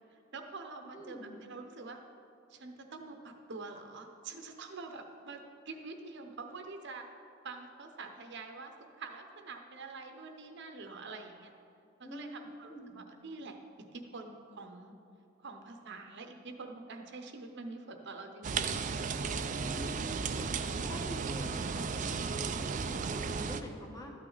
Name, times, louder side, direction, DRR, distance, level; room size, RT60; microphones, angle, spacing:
voice 1, 0.1-2.0 2.5-7.1 7.4-11.5 12.0-13.6 13.9-14.9 15.4-18.8, right 3 dB, 55° right, 5 dB, 0.8 m, -46 dB
voice 2, 0.9-1.4 12.0-13.0 19.6-20.5 20.8-24.1, equal, 20° left, 1 dB, 1.1 m, -46 dB
sound 1, 18.4-23.6, right 5 dB, 35° right, 0.4 m, -34 dB
13.0 x 9.1 x 4.0 m, 2.6 s
head